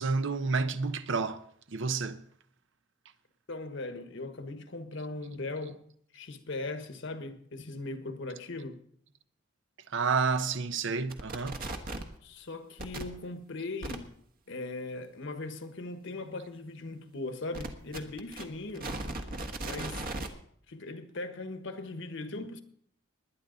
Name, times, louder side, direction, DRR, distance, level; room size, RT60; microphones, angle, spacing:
voice 1, 0.0-1.4 1.7-2.2 9.9-11.6, right 4 dB, 65° right, 0.8 m, -30 dB
voice 2, 3.5-5.8 6.1-8.8 12.2-14.1 14.5-18.9 19.6-20.1 20.7-22.6, left 2 dB, 65° left, 1.3 m, -39 dB
sound 1, 11.1-12.1 12.8-13.0 13.8-14.0 17.5-20.3, right 2 dB, 45° right, 1.3 m, -37 dB
20.5 x 9.9 x 3.9 m
head